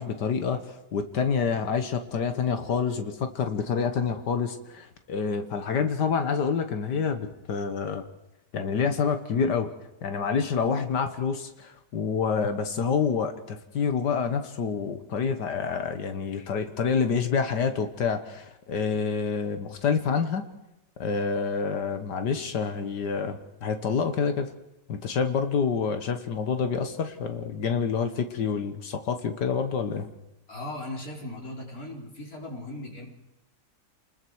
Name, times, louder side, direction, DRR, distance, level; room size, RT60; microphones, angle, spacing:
voice 1, 0.0-8.0 8.5-9.7 10.0-20.4 21.0-24.5 24.9-30.1, left 6 dB, 75° left, 8 dB, 1.9 m, -27 dB
voice 2, 30.5-33.1, left 1 dB, 55° left, 0 dB, 4.6 m, -38 dB
29.0 x 21.0 x 4.7 m, 0.91 s
omnidirectional pair, 1.8 m